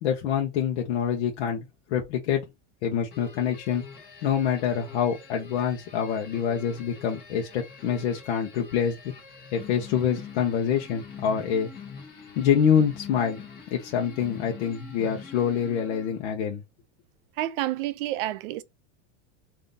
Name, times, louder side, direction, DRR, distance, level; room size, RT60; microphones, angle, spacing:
voice 1, 0.0-2.4 2.8-3.8 4.2-8.9 9.5-11.7 12.4-13.4 13.7-16.6, left 8 dB, 75° left, 0.9 m, -26 dB
sound 1, 3.1-16.3, left 6 dB, 30° left, 1.3 m, -45 dB
voice 2, 17.4-18.6, right 15 dB, 55° right, 0.5 m, -29 dB
3.7 x 2.7 x 3.9 m
supercardioid pair, 180°, 34 cm